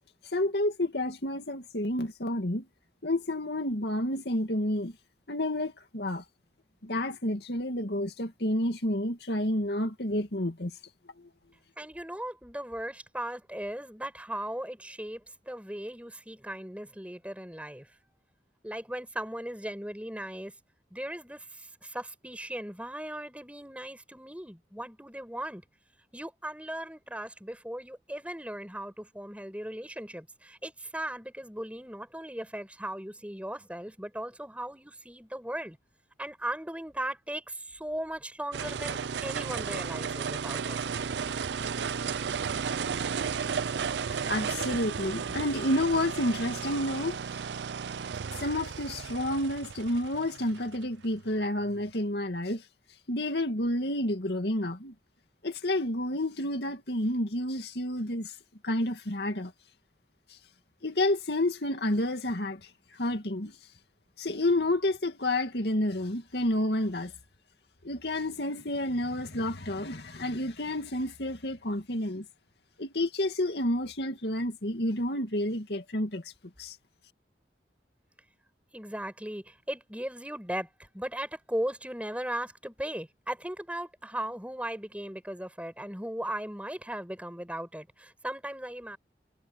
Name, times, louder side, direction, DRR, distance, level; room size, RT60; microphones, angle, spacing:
voice 1, 0.2-2.7 3.0-5.0 5.3-6.2 6.8-10.7 11.2-11.3 44.3-47.2 48.4-52.6 53.1-54.9 55.4-58.3 58.6-59.5 60.3-60.4 60.8-63.6 64.2-67.1 67.8-72.2 72.8-76.3 76.6-76.8, left 1 dB, 70° left, 2.3 m, -30 dB
voice 2, 11.8-17.9 18.6-20.5 20.9-25.6 26.1-35.8 36.2-40.8 78.7-89.0, right 1 dB, 10° right, 5.6 m, -37 dB
sound 1, 38.5-51.9, right 6 dB, 85° right, 0.5 m, -34 dB
head